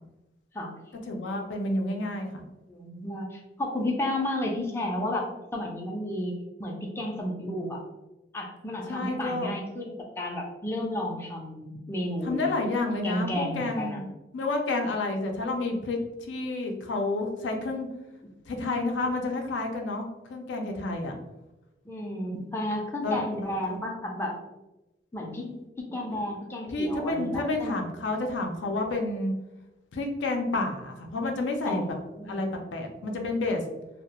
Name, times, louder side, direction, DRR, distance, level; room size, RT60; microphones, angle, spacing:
voice 1, 1.1-2.4 8.9-9.5 12.2-14.1 14.3-17.9 18.5-21.2 23.0-23.8 25.4-25.6 26.7-29.3 29.9-31.8 32.2-33.6, left 2 dB, 90° left, 3 dB, 0.4 m, -30 dB
voice 2, 2.7-7.8 8.3-12.4 13.0-14.0 21.8-24.3 25.1-25.5 25.8-27.8 31.7-31.8 32.2-32.5, left 1 dB, 15° left, -1 dB, 0.3 m, -32 dB
2.3 x 2.0 x 2.8 m, 1.0 s
head